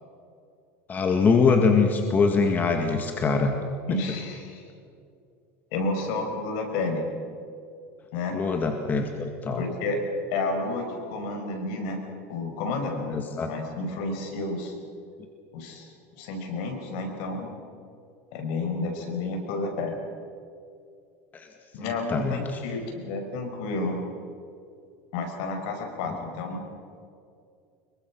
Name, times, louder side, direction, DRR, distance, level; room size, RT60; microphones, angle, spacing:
voice 1, 0.9-3.5 8.3-9.7 13.1-13.5 21.3-21.5 21.8-22.6, left 4 dB, 25° left, 4 dB, 2.0 m, -23 dB
voice 2, 3.9-4.6 5.7-7.0 8.1-8.4 9.6-10.0 10.3-12.0 12.3-14.7 15.5-17.5 18.3-20.0 21.7-24.0 25.1-26.6, left 3 dB, 70° left, 4 dB, 5.6 m, -31 dB
25.5 x 23.0 x 6.3 m, 2.4 s
supercardioid pair, 135°, 7 cm